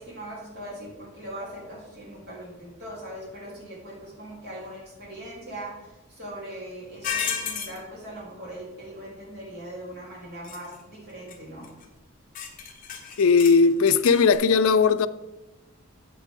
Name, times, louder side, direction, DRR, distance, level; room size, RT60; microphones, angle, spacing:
voice 1, 0.0-11.7, right 1 dB, 50° right, 3.4 m, -40 dB
sound 1, 7.0-7.8 10.4-10.7 11.3-11.4 11.6-11.8 12.3-14.3, left 7 dB, 40° left, 1.0 m, -32 dB
voice 2, 13.2-15.1, left 5 dB, 75° left, 0.4 m, -18 dB
8.4 x 8.1 x 3.7 m
head